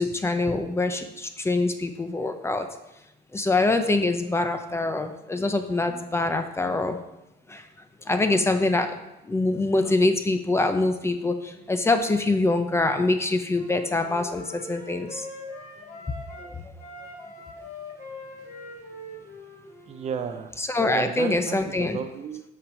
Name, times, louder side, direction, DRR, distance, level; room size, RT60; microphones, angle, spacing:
voice 1, 0.0-2.7 3.3-7.0 7.5-7.6 8.1-8.9 9.3-11.4 11.7-15.2 20.6-22.0, left 2 dB, 15° left, 7 dB, 0.7 m, -24 dB
Wind instrument woodwind instrument, 13.6-16.5 16.8-20.1, left 2 dB, 60° left, 2.7 m, -42 dB
voice 2, 19.9-20.5 20.9-22.4, right 6 dB, 40° right, 7 dB, 0.6 m, -33 dB
5.8 x 5.2 x 6.3 m, 0.92 s
cardioid pair, 110°, 17 cm